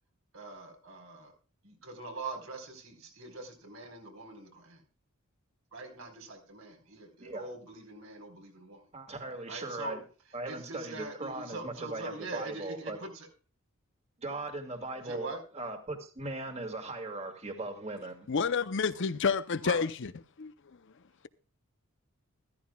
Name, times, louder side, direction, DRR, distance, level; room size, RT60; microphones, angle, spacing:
voice 1, 0.3-1.3 1.6-4.8 5.7-8.9 9.5-10.0 10.5-13.3 15.0-15.4 19.6-19.8, right 2 dB, 80° right, 4.3 m, -43 dB
voice 2, 8.9-10.0 10.3-13.0 14.2-15.3 15.5-18.3, right 2 dB, 30° right, 2.0 m, -38 dB
voice 3, 18.3-20.1 20.4-20.5, left 5 dB, 60° left, 0.7 m, -29 dB
14.5 x 14.0 x 2.3 m
head